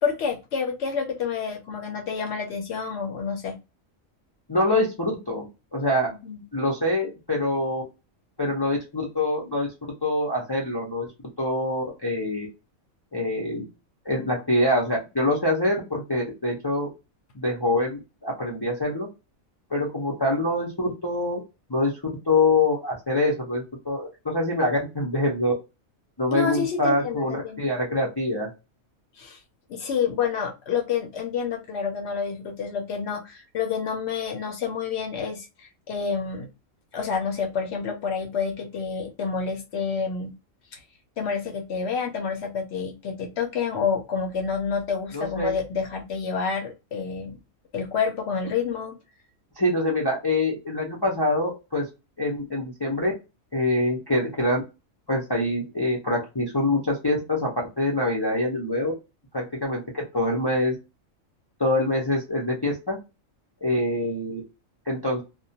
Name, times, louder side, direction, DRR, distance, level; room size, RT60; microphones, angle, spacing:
voice 1, 0.0-3.6 6.2-6.4 26.3-27.7 29.2-29.4 29.7-36.5 36.9-40.3 40.7-40.8 41.2-47.3 47.7-49.0, left 6 dB, 60° left, 3 dB, 0.8 m, -28 dB
voice 2, 4.5-5.5 5.7-6.1 6.5-7.8 8.4-9.7 10.0-11.1 11.4-12.5 13.1-13.6 14.0-16.9 17.3-19.1 19.7-21.4 21.7-21.9 22.3-25.5 26.2-28.5 45.1-45.5 49.6-51.9 52.2-53.1 53.5-54.6 55.1-58.9 59.3-60.7 61.6-63.0 63.6-64.4 64.9-65.2, left 1 dB, 35° left, -3 dB, 0.4 m, -25 dB
2.3 x 2.1 x 2.6 m, 0.26 s
omnidirectional pair, 1.4 m